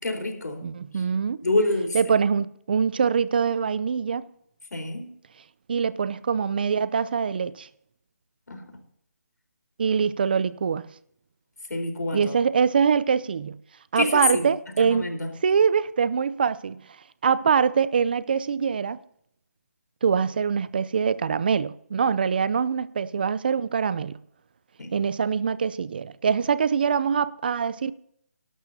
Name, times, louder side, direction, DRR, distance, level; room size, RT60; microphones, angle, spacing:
voice 1, 0.0-0.6 1.4-2.1 4.7-5.1 8.5-8.6 11.7-12.3 14.0-14.5 14.8-15.3 24.8-24.9, left 2 dB, 85° left, 4.0 m, -27 dB
voice 2, 0.6-1.4 1.9-4.2 5.7-7.7 9.8-10.9 12.1-13.6 13.9-15.1 15.4-16.8 17.2-19.0 20.0-24.2 24.9-27.9, right 6 dB, 35° right, 0.5 m, -24 dB
22.0 x 12.0 x 2.7 m
hypercardioid pair, 170°, 9 cm